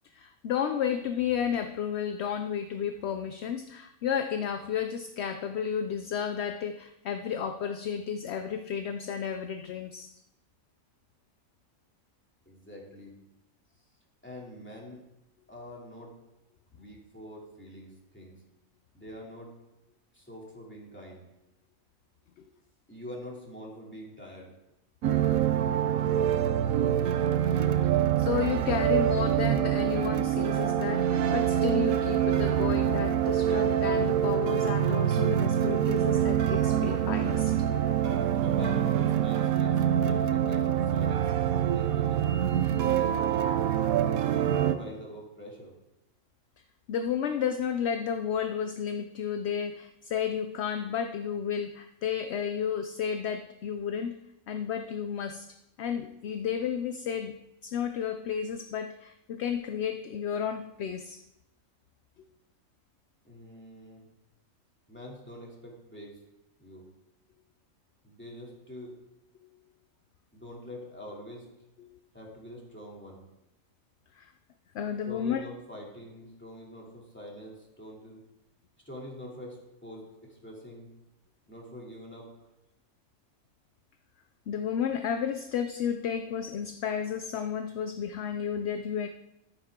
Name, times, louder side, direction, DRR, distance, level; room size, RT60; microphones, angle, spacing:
voice 1, 0.1-10.2 28.2-37.6 46.9-54.2 54.5-55.5 55.8-61.2 71.8-72.0 74.2-74.3 74.7-75.4 84.5-89.1, left 8 dB, 65° left, 8 dB, 0.7 m, -32 dB
voice 2, 12.5-13.2 14.2-15.0 15.5-16.1 16.7-18.4 18.9-19.5 20.1-21.3 22.9-24.5 38.4-41.3 41.6-42.3 42.8-43.5 44.2-45.7 63.2-64.1 64.9-66.2 66.6-66.9 68.0-68.9 70.3-71.5 72.1-73.3 75.0-78.2 78.8-80.9 81.5-82.3, equal, 10° left, -3 dB, 2.7 m, -45 dB
sound 1, 25.0-44.7, right 10 dB, 90° right, 1.2 m, -25 dB
13.5 x 9.2 x 3.7 m, 0.91 s
omnidirectional pair, 1.4 m